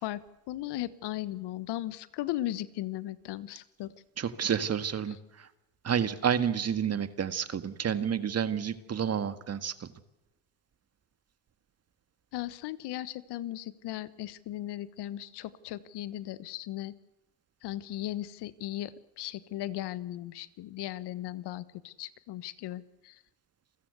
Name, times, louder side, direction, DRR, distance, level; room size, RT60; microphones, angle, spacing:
voice 1, 0.0-3.9 12.3-16.9 17.6-23.2, left 14 dB, 60° left, 16 dB, 1.3 m, -37 dB
voice 2, 4.2-5.5 5.8-9.9, right 8 dB, 30° right, 12 dB, 1.7 m, -30 dB
28.5 x 14.5 x 8.2 m, 1.0 s
supercardioid pair, 95°, 47 cm